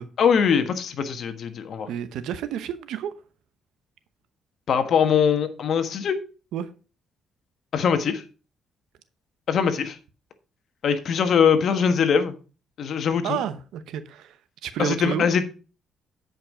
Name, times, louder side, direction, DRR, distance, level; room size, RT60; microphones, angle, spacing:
voice 1, 0.2-1.9 4.7-6.2 7.7-8.2 9.5-10.0 10.8-12.3 12.8-13.4 14.8-15.4, left 7 dB, 60° left, 9 dB, 1.3 m, -22 dB
voice 2, 1.9-3.1 6.5-6.7 13.2-14.4 14.6-15.3, right 10 dB, 85° right, 13 dB, 0.8 m, -30 dB
8.9 x 5.3 x 4.9 m, 0.34 s
cardioid pair, 90°, 0 cm